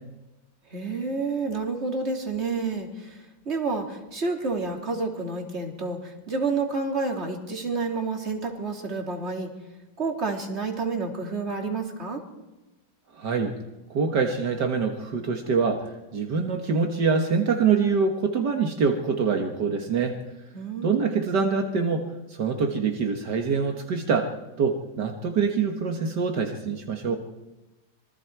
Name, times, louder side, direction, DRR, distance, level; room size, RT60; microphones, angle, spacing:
voice 1, 0.7-9.5 10.0-12.2 20.5-21.2, right 3 dB, 40° right, 2 dB, 3.2 m, -29 dB
voice 2, 13.2-13.5 13.9-20.2 20.8-24.3 24.6-27.2, right 5 dB, 75° right, 3 dB, 2.1 m, -25 dB
26.5 x 23.5 x 4.7 m, 1.0 s
omnidirectional pair, 1.9 m